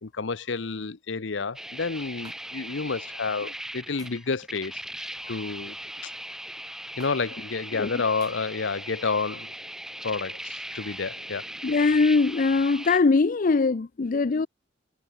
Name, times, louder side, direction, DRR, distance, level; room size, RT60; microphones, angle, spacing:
voice 1, 0.0-5.8 6.0-6.1 7.0-9.5 10.0-11.5, left 4 dB, 75° left, 0.8 m, -30 dB
sound 1, 1.5-13.0, right 1 dB, 5° right, 0.6 m, -39 dB
sound 2, 2.2-2.4 4.0-4.3 5.6-5.9 7.0-7.2 8.2-8.4, right 4 dB, 20° right, 1.8 m, -50 dB
voice 2, 11.6-14.5, left 4 dB, 45° left, 0.5 m, -21 dB
head